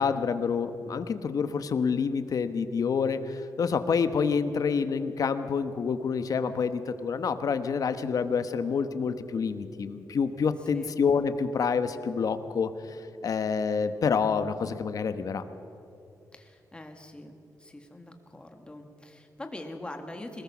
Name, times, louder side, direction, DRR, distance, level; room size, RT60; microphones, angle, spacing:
voice 1, 0.0-12.7 13.2-15.4, left 6 dB, 55° left, 10 dB, 1.1 m, -27 dB
voice 2, 16.3-17.3 17.6-20.4, left 1 dB, 15° left, 5 dB, 1.8 m, -43 dB
22.5 x 20.0 x 6.2 m, 2.8 s
wide cardioid pair, 145°, 7 cm